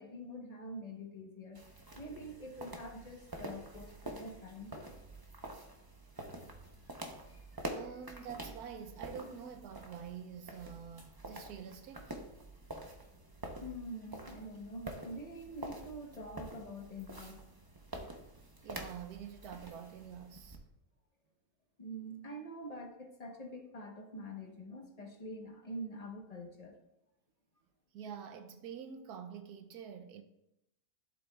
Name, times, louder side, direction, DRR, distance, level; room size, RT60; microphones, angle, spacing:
voice 1, 0.0-1.6 2.0-4.9 13.6-17.4 21.8-26.8, equal, 30° left, 1.0 m, -45 dB
sound 1, 1.5-20.6, right 1 dB, 20° right, 0.6 m, -47 dB
voice 2, 7.7-12.1 18.6-20.6 27.9-30.2, right 7 dB, 85° right, 1.2 m, -47 dB
12.0 x 7.5 x 2.4 m
omnidirectional pair, 1.6 m